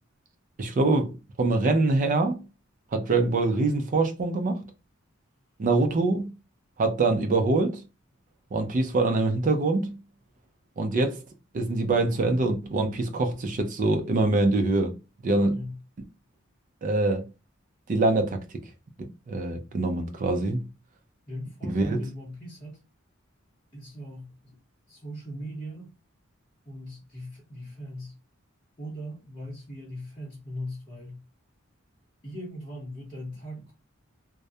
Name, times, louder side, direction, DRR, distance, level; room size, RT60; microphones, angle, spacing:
voice 1, 0.6-2.4 2.9-4.6 5.6-6.3 6.8-7.8 8.5-9.9 10.8-11.2 11.5-15.0 15.2-15.6 16.8-17.3 17.9-18.4 19.0-20.6 21.7-22.0, right 2 dB, 40° right, 0.4 m, -24 dB
voice 2, 21.3-22.8 23.7-24.6 24.9-25.9 26.6-28.1 28.8-31.2 32.2-33.7, equal, 25° left, 0.7 m, -39 dB
2.3 x 2.0 x 2.6 m
head